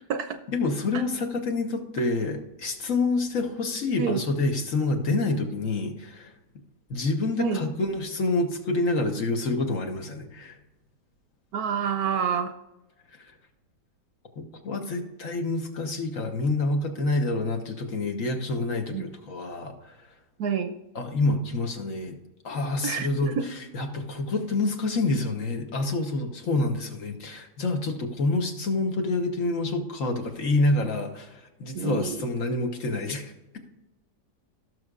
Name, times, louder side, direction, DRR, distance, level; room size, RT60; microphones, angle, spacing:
voice 1, 0.5-6.3 6.9-10.6 14.4-19.9 20.9-22.2 22.4-33.3, left 2 dB, 55° left, 4 dB, 1.5 m, -27 dB
voice 2, 11.5-12.5 18.9-19.0 20.4-20.7 22.8-23.5 31.7-32.2, right 6 dB, 70° right, 9 dB, 1.1 m, -28 dB
17.5 x 6.4 x 2.5 m, 1.0 s
omnidirectional pair, 1.8 m